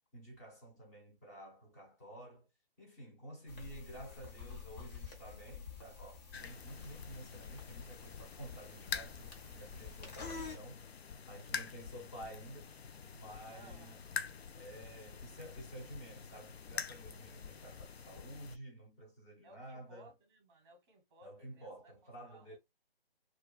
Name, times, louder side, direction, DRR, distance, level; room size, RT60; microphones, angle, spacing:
voice 1, 0.1-2.5 2.8-10.9 11.3-12.7 13.1-14.0 14.5-20.1 21.2-22.6, right 1 dB, 15° left, 0.7 m, -51 dB
sound 1, 3.5-10.6, left 5 dB, 40° left, 0.9 m, -49 dB
sound 2, 6.3-18.6, left 6 dB, 80° left, 0.5 m, -46 dB
voice 2, 13.5-14.0 19.4-22.6, right 1 dB, 25° right, 0.9 m, -60 dB
2.3 x 2.3 x 2.3 m
figure-of-eight pair, 150°, 31 cm